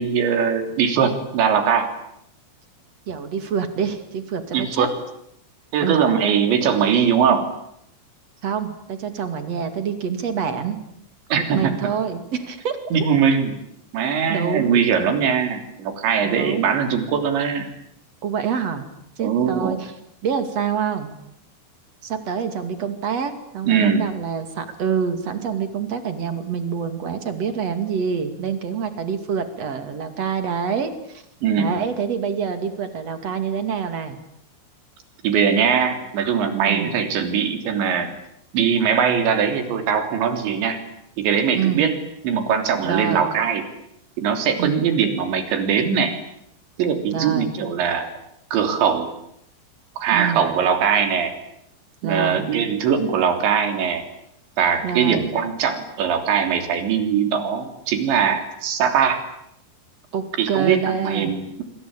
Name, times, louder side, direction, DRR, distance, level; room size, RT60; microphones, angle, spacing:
voice 1, 0.0-1.9 4.5-4.9 5.7-7.5 11.3-11.7 12.9-13.6 13.9-17.7 19.2-19.8 23.7-24.1 31.4-31.7 35.2-38.1 38.5-40.8 41.2-42.0 42.2-43.6 44.2-46.1 46.8-48.1 48.5-49.1 50.0-51.3 52.0-54.0 54.6-59.2 60.4-61.6, right 7 dB, 70° right, 7 dB, 5.4 m, -21 dB
voice 2, 3.1-4.9 5.8-6.0 8.4-10.8 11.4-12.8 14.3-14.8 16.2-16.8 18.2-18.9 19.2-19.9 20.2-21.2 22.0-31.2 31.6-34.2 36.7-36.9 41.5-41.8 42.8-43.3 44.6-44.9 47.1-47.5 50.1-50.5 52.0-52.5 54.8-55.3 60.1-61.3, right 7 dB, 40° right, 9 dB, 2.8 m, -26 dB
26.5 x 25.5 x 8.9 m, 0.76 s
omnidirectional pair, 5.5 m